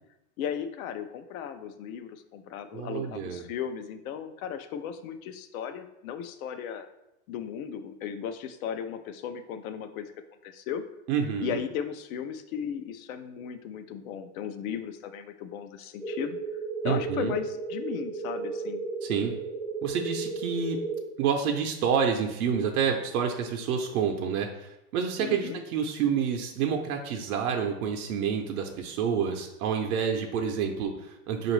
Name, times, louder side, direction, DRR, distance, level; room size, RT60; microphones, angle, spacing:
voice 1, 0.4-6.9 7.3-10.1 10.4-10.8 11.4-16.4 16.8-18.9 25.2-25.6, left 8 dB, 75° left, 9 dB, 0.5 m, -36 dB
voice 2, 2.7-3.4 11.1-11.6 16.8-17.3 19.0-19.3 19.8-20.8 21.2-31.5, right 7 dB, 90° right, 2 dB, 0.6 m, -28 dB
sound 1, 16.0-21.0, right 4 dB, 5° left, 0.4 m, -34 dB
4.8 x 2.5 x 3.1 m, 0.90 s
supercardioid pair, 150°, 42 cm